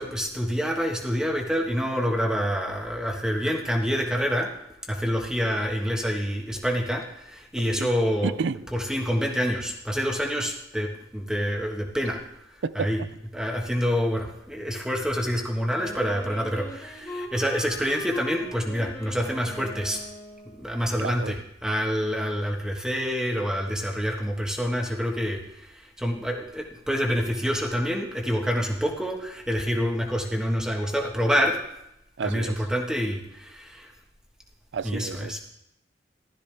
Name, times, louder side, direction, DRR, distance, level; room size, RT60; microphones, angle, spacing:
voice 1, 0.0-4.5 4.9-8.3 8.7-12.2 12.7-13.0 13.3-20.0 20.5-31.6 32.2-33.9 34.8-35.4, equal, 5° right, 1 dB, 1.5 m, -27 dB
voice 2, 7.6-7.9 8.2-8.6 12.6-12.9 21.0-21.3 32.2-32.5 34.7-35.4, right 5 dB, 75° right, 16 dB, 0.4 m, -30 dB
Wind instrument woodwind instrument, 15.7-20.7, left 1 dB, 15° left, 1.7 m, -39 dB
15.5 x 12.5 x 3.5 m, 0.83 s
head